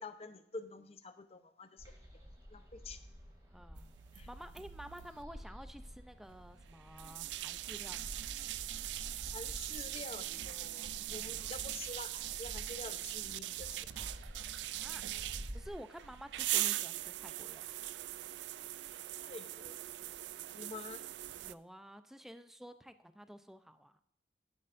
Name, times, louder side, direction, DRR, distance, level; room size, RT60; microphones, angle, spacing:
voice 1, 0.0-1.9 2.5-3.0 4.1-4.3 9.3-13.9 19.2-19.7 20.5-21.0, left 3 dB, 35° left, 9 dB, 0.7 m, -48 dB
sound 1, 1.8-15.7, equal, 20° right, 2.5 m, -51 dB
voice 2, 3.5-3.9 4.3-8.3 11.1-11.4 14.6-17.9 21.4-24.0, equal, ahead, 10 dB, 0.5 m, -51 dB
sound 2, 3.8-5.2 6.3-21.5, right 15 dB, 75° right, 0.3 m, -41 dB
11.0 x 10.0 x 2.6 m, 0.73 s
head